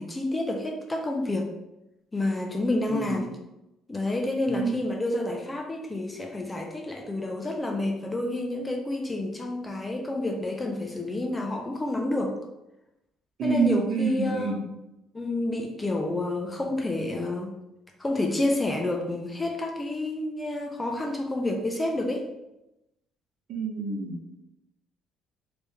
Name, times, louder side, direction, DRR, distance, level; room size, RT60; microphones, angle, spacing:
voice 1, 0.0-1.5 2.1-3.3 3.9-12.4 13.4-14.5 15.1-17.5 18.0-22.3, left 2 dB, 15° left, 3 dB, 0.4 m, -29 dB
voice 2, 2.9-3.2 4.5-4.8 13.4-14.6 23.5-24.2, right 5 dB, 55° right, -1 dB, 1.0 m, -27 dB
3.4 x 3.2 x 3.0 m, 0.93 s
cardioid pair, 135°, 0 cm